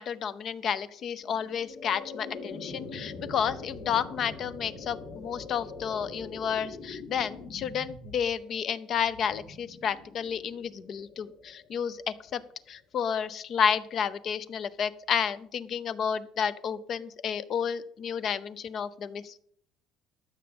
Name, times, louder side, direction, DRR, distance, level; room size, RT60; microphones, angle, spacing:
voice 1, 0.0-12.4 12.7-19.4, left 7 dB, 40° left, 16 dB, 0.6 m, -31 dB
sound 1, 1.2-12.3, left 3 dB, 80° left, 3.6 m, -43 dB
13.0 x 6.9 x 7.0 m, 0.64 s
cardioid pair, 165°, 0 cm